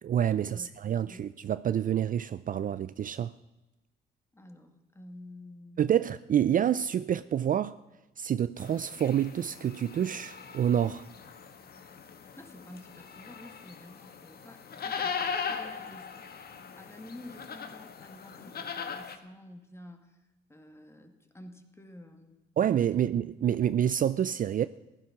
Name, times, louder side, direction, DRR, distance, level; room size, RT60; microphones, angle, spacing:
voice 1, 0.0-3.3 5.8-7.8 8.2-11.1 22.6-24.7, right 9 dB, 45° right, 0.4 m, -28 dB
voice 2, 4.3-5.8 12.4-15.2 15.5-16.1 16.8-22.4, left 1 dB, 15° left, 1.9 m, -50 dB
sound 1, 8.6-19.2, left 6 dB, 50° left, 1.3 m, -39 dB
15.5 x 11.5 x 6.0 m
cardioid pair, 90°, 20 cm